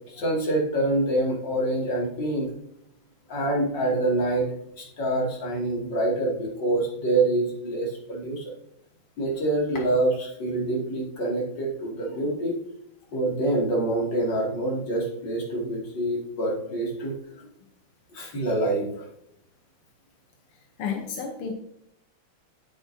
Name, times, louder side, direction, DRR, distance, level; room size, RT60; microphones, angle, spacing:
voice 1, 0.1-2.5 3.3-8.5 9.2-12.6 13.1-17.1 18.1-19.1, right 1 dB, 55° left, -3 dB, 3.1 m, -26 dB
voice 2, 20.8-21.5, left 6 dB, 90° left, 3 dB, 1.8 m, -31 dB
9.4 x 8.3 x 2.7 m, 0.75 s
omnidirectional pair, 2.3 m